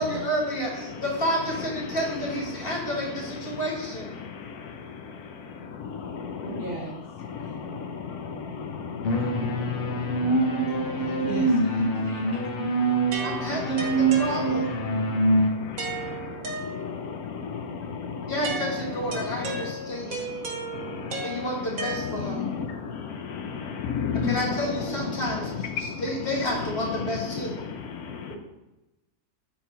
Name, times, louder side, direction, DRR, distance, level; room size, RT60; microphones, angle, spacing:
voice 1, 0.0-4.2 10.6-10.7 11.3-11.4 13.2-14.7 18.3-20.3 21.2-22.5 24.1-27.6, equal, 40° left, -3 dB, 1.6 m, -30 dB
voice 2, 4.2-5.0 5.6-11.5 12.3-12.4 13.1-13.2 13.8-13.9 15.1-18.3 19.2-19.3 20.6-21.3 22.3-24.4 25.8-26.0 28.0-28.4, left 6 dB, 75° left, 5 dB, 1.1 m, -34 dB
voice 3, 6.5-7.0 11.2-12.2, right 2 dB, 40° right, -4 dB, 1.0 m, -35 dB
sound 1, 9.0-15.5, right 2 dB, 55° left, 0.7 m, -24 dB
sound 2, 13.1-14.9 15.8-17.2 18.4-22.5, right 3 dB, 65° right, 1.4 m, -35 dB
4.5 x 3.9 x 5.6 m, 0.99 s
omnidirectional pair, 1.6 m